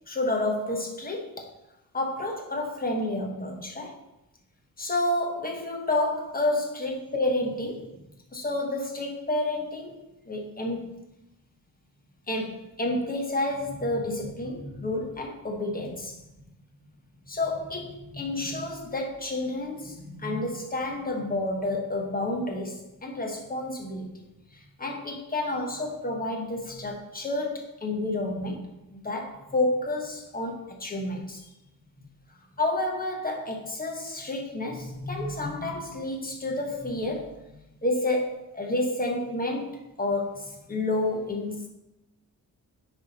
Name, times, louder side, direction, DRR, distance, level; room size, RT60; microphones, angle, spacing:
voice 1, 0.1-1.4 1.9-3.9 4.8-7.9 8.3-10.0 10.3-11.1 12.3-16.1 17.2-24.2 24.5-28.7 28.9-31.4 32.6-41.7, left 2 dB, 25° left, 1 dB, 1.2 m, -30 dB
9.6 x 3.6 x 4.2 m, 0.91 s
wide cardioid pair, 140°, 37 cm